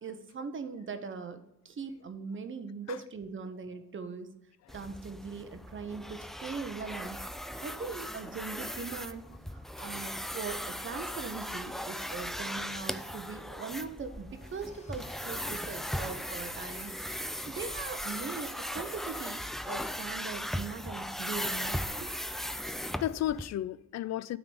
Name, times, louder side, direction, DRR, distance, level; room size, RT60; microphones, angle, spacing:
voice 1, 0.0-4.3 4.7-7.2 7.6-16.9 17.5-22.1, right 5 dB, 40° right, 1.0 m, -40 dB
sound 1, 4.7-23.5, equal, ahead, 0.4 m, -38 dB
sound 2, 10.6-15.6, right 3 dB, 25° right, 1.9 m, -59 dB
Domestic sounds home sounds / Tools, 14.3-20.5, left 3 dB, 25° left, 1.1 m, -60 dB
voice 2, 22.5-24.4, left 12 dB, 60° left, 0.5 m, -34 dB
9.2 x 3.9 x 6.9 m
cardioid pair, 90°, 30 cm